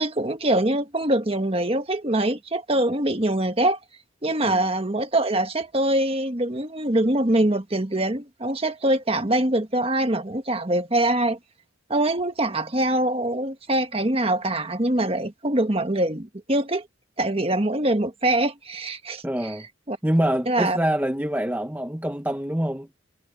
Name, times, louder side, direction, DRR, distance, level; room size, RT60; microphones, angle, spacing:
voice 1, 0.0-3.8 4.2-11.4 11.9-16.8 17.2-19.2 19.9-20.0 20.5-20.8, right 1 dB, 25° right, 1.5 m, -23 dB
voice 2, 19.2-19.7 20.0-22.9, right 1 dB, 10° right, 0.9 m, -25 dB
head